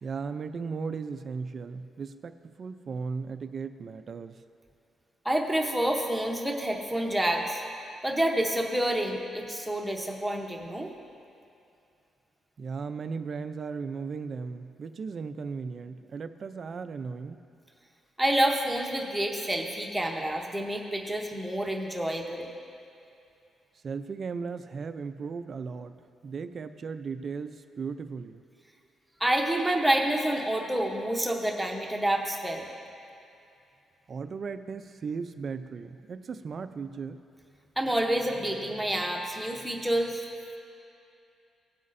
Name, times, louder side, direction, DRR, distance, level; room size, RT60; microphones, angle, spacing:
voice 1, 0.0-4.4 12.6-17.4 23.8-28.4 34.1-37.2, right 5 dB, 35° right, 9 dB, 0.4 m, -36 dB
voice 2, 5.2-7.6 8.0-10.9 18.2-22.5 29.2-32.7 37.8-40.2, right 1 dB, ahead, 0 dB, 0.8 m, -28 dB
17.5 x 8.1 x 2.6 m, 2.6 s
cardioid pair, 180°, 0 cm